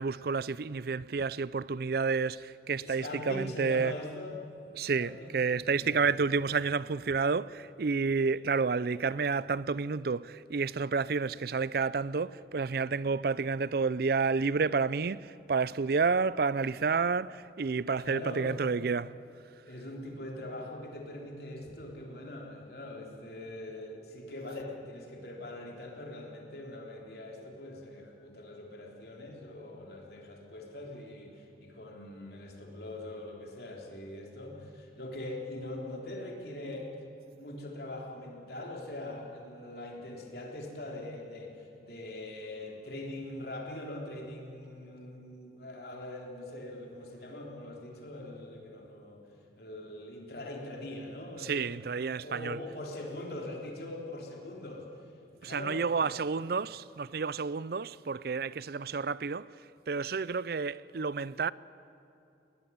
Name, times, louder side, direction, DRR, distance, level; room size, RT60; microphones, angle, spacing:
voice 1, 0.0-3.9 4.7-19.2 51.4-52.6 55.4-59.5 59.9-61.5, right 4 dB, 60° right, 0.5 m, -30 dB
voice 2, 2.8-4.5 4.8-6.1 18.0-18.5 19.7-36.9 37.4-49.2 49.6-51.7 52.1-54.9 55.4-56.1, left 1 dB, 60° left, 3.7 m, -42 dB
21.5 x 18.5 x 9.5 m
head